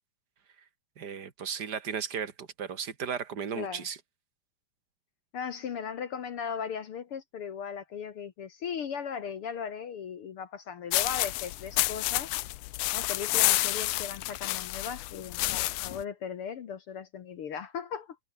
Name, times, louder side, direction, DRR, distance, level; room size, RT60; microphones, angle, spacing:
voice 1, 1.0-4.0, right 7 dB, 35° right, 2.1 m, -35 dB
voice 2, 3.5-3.9 5.3-12.4 12.9-18.2, left 7 dB, 55° left, 1.6 m, -37 dB
sound 1, 10.9-16.0, left 19 dB, 75° left, 1.9 m, -29 dB
omnidirectional pair, 4.0 m